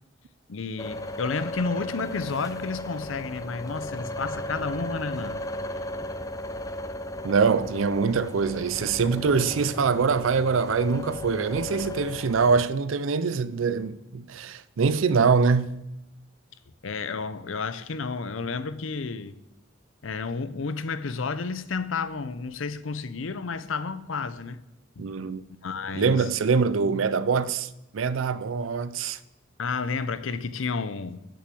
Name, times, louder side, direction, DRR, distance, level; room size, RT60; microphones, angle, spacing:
voice 1, 0.5-5.4 16.8-19.4 20.0-24.6 25.0-25.1 25.6-26.3 29.6-31.2, left 4 dB, 80° left, 0.6 m, -31 dB
sound 1, 0.8-12.7, left 1 dB, 15° left, 0.5 m, -36 dB
voice 2, 7.2-15.8 25.0-25.4 25.9-29.2, right 5 dB, 80° right, 0.5 m, -24 dB
7.8 x 6.9 x 7.7 m
head